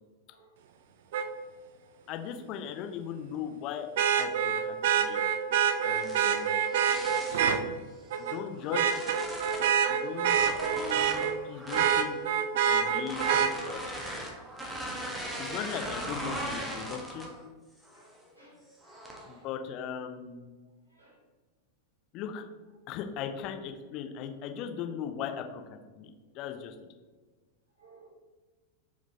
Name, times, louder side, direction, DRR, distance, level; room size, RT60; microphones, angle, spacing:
Vehicle horn car horn honking, 1.1-1.2 4.0-7.6 8.1-8.4 8.7-11.3 11.7-13.5 15.3-15.4, right 8 dB, 55° right, 0.3 m, -26 dB
voice 1, 2.1-3.9 4.2-5.3 5.8-6.5 8.2-9.0 9.9-10.4 10.8-12.2 12.7-14.0 15.1-17.3 19.2-20.5 22.1-22.5 22.9-26.8, left 8 dB, 40° left, 6 dB, 0.4 m, -38 dB
sound 1, 5.9-7.5 8.1-9.8 10.2-12.1 13.0-17.4 17.8-18.2 18.8-19.3, right 1 dB, 5° right, 0.8 m, -39 dB
voice 2, 17.9-18.6 18.9-19.0 19.2-19.5 20.9-21.1 27.8-28.1, right 2 dB, 85° right, -7 dB, 1.2 m, -58 dB
4.6 x 3.7 x 2.7 m, 1.3 s
figure-of-eight pair, 90°, 0 cm